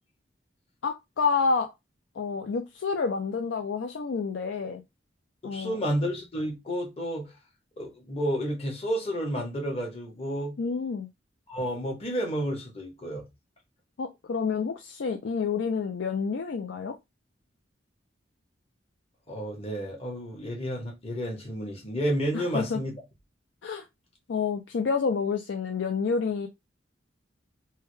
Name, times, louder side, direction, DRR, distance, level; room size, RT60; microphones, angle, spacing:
voice 1, 0.8-1.7 2.2-4.8 5.4-5.8 10.6-11.1 14.0-16.9 22.3-22.8 23.6-23.8 24.3-26.5, left 5 dB, 85° left, 0.4 m, -29 dB
voice 2, 5.4-7.3 7.8-10.5 11.5-13.2 19.3-23.0, equal, 35° left, 1.1 m, -31 dB
3.4 x 2.2 x 3.1 m
head